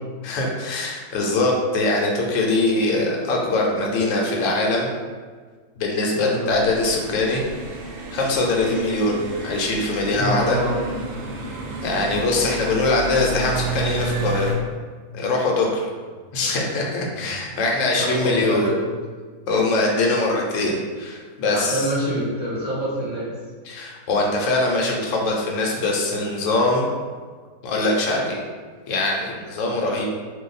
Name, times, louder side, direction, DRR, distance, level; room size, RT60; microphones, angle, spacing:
voice 1, 0.2-4.9 5.8-7.4 8.1-10.6 11.8-14.5 15.1-15.9 16.3-18.7 19.5-21.9 23.7-26.9 27.6-28.4 28.9-30.0, left 2 dB, 65° left, -1 dB, 0.9 m, -22 dB
sound 1, 6.5-14.5, right 2 dB, 70° right, 0.6 m, -31 dB
voice 2, 10.1-10.8 17.1-17.3 18.0-18.8 21.4-23.3 29.7-29.8, equal, 20° left, -10 dB, 0.8 m, -26 dB
2.6 x 2.3 x 4.0 m, 1.5 s
omnidirectional pair, 1.6 m